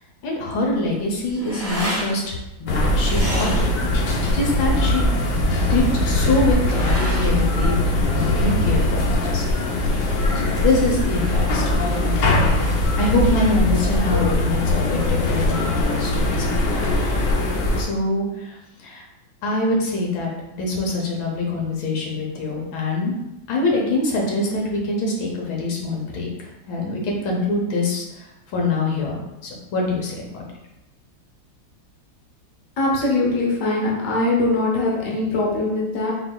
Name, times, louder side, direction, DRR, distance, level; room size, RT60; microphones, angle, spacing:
voice 1, 0.2-3.6 4.3-5.0 5.7-10.1 10.4-12.3 13.0-16.9 17.8-19.1 19.4-23.1 23.5-28.3 28.5-30.4, left 2 dB, 85° left, -2 dB, 1.7 m, -24 dB
sound 1, 0.7-8.6, equal, 10° right, 0.7 m, -33 dB
sound 2, 2.7-17.8, left 1 dB, 70° left, 1.3 m, -21 dB
voice 2, 32.8-36.1, left 2 dB, 50° left, -3 dB, 1.2 m, -21 dB
4.7 x 3.9 x 2.3 m, 0.95 s
omnidirectional pair, 2.1 m